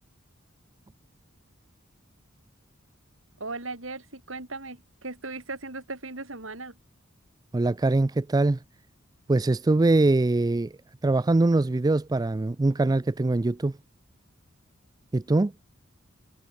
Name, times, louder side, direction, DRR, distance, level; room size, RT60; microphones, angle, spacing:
voice 1, 3.4-6.7, right 3 dB, 75° right, 5.8 m, -37 dB
voice 2, 7.5-8.6 9.3-10.7 11.0-13.7 15.1-15.5, right 2 dB, 20° right, 0.4 m, -22 dB
head